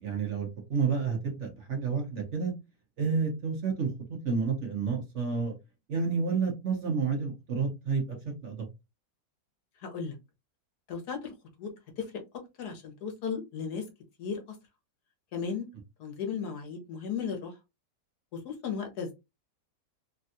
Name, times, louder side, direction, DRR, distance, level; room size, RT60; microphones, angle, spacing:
voice 1, 0.0-2.5 3.0-5.5 5.9-8.2 8.4-8.6, right 5 dB, 55° right, 2 dB, 1.0 m, -30 dB
voice 2, 9.8-10.2 10.9-11.3 11.6-11.7 12.0-12.1 12.6-13.8 14.2-14.4 15.3-15.7 16.0-17.5 18.3-19.1, left 6 dB, 75° left, 4 dB, 1.5 m, -35 dB
3.4 x 2.3 x 2.7 m, 0.24 s
omnidirectional pair, 1.7 m